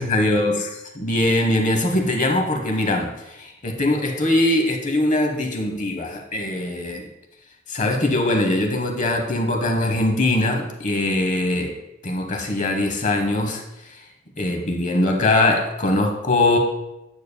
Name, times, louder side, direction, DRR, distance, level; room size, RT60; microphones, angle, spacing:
voice 1, 0.0-7.0 7.7-11.7 12.0-14.1 14.4-16.6, left 1 dB, 35° left, 4 dB, 0.9 m, -22 dB
9.2 x 6.7 x 2.2 m, 0.93 s
head